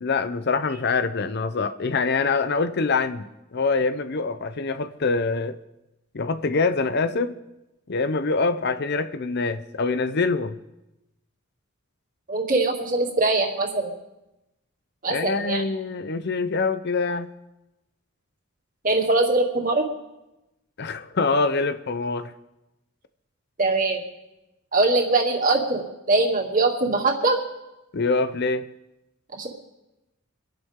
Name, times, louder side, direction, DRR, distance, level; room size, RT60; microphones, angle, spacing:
voice 1, 0.0-5.6 6.1-7.4 7.9-10.6 15.1-17.3 20.8-22.3 27.9-28.7, left 4 dB, 55° left, 0.7 m, -25 dB
voice 2, 12.3-13.9 15.0-15.6 18.8-19.8 23.6-24.0 24.7-27.4 29.3-29.5, right 2 dB, 40° right, 2.5 m, -22 dB
25.5 x 11.0 x 3.7 m
head